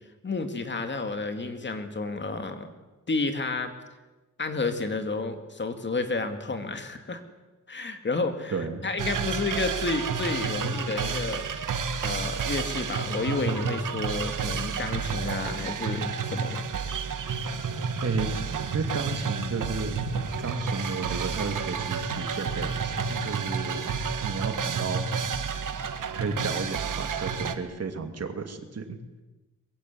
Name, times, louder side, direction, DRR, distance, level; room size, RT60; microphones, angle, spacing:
voice 1, 0.2-2.7 3.1-3.7 4.4-7.2 7.7-11.5 12.0-16.6, left 3 dB, 35° left, 7 dB, 2.3 m, -31 dB
voice 2, 8.5-8.8 18.0-18.3 18.7-20.0 20.4-23.9 24.2-25.1 26.1-29.0, right 4 dB, 55° right, 6 dB, 2.8 m, -33 dB
sound 1, 9.0-27.5, right 5 dB, 85° right, 1.9 m, -30 dB
23.0 x 22.0 x 9.6 m, 1.2 s
wide cardioid pair, 175°, 31 cm